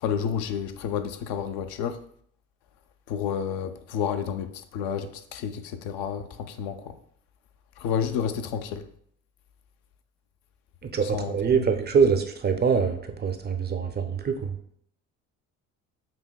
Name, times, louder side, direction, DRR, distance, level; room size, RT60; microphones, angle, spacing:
voice 1, 0.0-2.0 3.1-6.9 7.8-8.8 11.1-11.3, left 7 dB, 65° left, 0.5 m, -30 dB
voice 2, 10.8-14.5, right 6 dB, 25° right, 0.4 m, -24 dB
5.7 x 2.6 x 2.3 m
hypercardioid pair, 60°, 41 cm